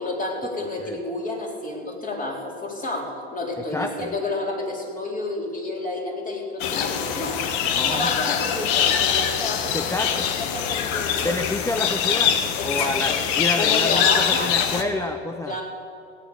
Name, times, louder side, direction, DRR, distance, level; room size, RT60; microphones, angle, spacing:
voice 1, 0.0-11.4 12.6-13.2 13.6-15.1 15.5-15.6, left 2 dB, 25° left, -1 dB, 4.1 m, -30 dB
voice 2, 3.7-4.1 7.6-8.1 9.7-10.3 11.2-15.6, left 2 dB, 10° left, 7 dB, 0.6 m, -29 dB
sound 1, 6.6-14.8, left 8 dB, 60° left, 1.3 m, -23 dB
16.5 x 9.2 x 7.1 m, 2.5 s
hypercardioid pair, 85°, 33 cm